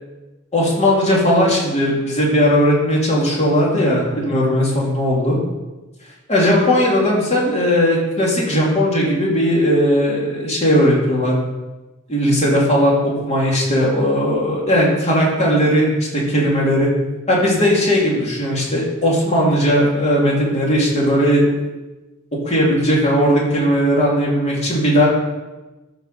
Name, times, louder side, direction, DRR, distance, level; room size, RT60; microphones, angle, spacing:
voice 1, 0.5-5.4 6.3-11.4 12.1-15.9 16.1-16.9 17.3-21.4 22.4-25.1, equal, 30° left, -3 dB, 2.8 m, -17 dB
13.0 x 4.7 x 6.7 m, 1.1 s
head